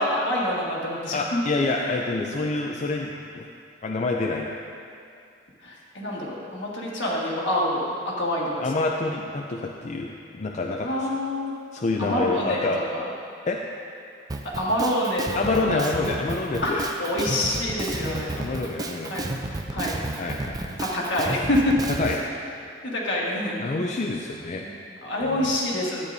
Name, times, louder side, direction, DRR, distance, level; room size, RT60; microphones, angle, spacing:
voice 1, 0.0-1.4 5.6-7.8 8.2-8.7 10.8-11.5 12.0-13.0 14.6-16.2 16.6-18.4 19.1-19.3 19.7-20.0 20.8-21.7 22.8-23.9 24.6-26.1, left 1 dB, 70° left, -4 dB, 1.7 m, -27 dB
voice 2, 1.1-3.5 3.8-4.6 8.6-10.9 11.7-12.8 13.5-13.6 15.4-16.8 18.2-19.2 20.2-20.8 22.0-22.2 23.6-24.7 25.2-25.5, left 3 dB, 40° left, 0 dB, 0.4 m, -27 dB
Drum kit, 14.3-22.2, right 2 dB, 20° right, 0.4 m, -32 dB
12.0 x 8.4 x 2.7 m, 2.5 s
head